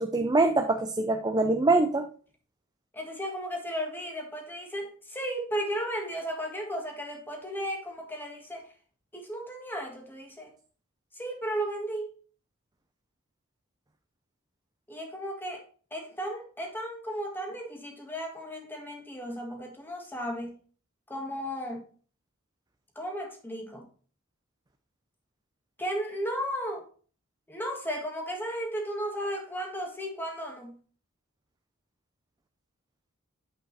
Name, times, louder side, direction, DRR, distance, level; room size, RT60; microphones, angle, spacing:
voice 1, 0.0-2.1, right 2 dB, 20° right, 6 dB, 0.6 m, -24 dB
voice 2, 2.9-8.7 9.1-10.5 11.1-12.1 14.9-15.6 15.9-20.6 21.1-21.9 23.0-23.9 25.8-26.8 27.5-30.8, equal, 10° left, 2 dB, 1.8 m, -35 dB
8.9 x 5.3 x 4.1 m, 0.41 s
head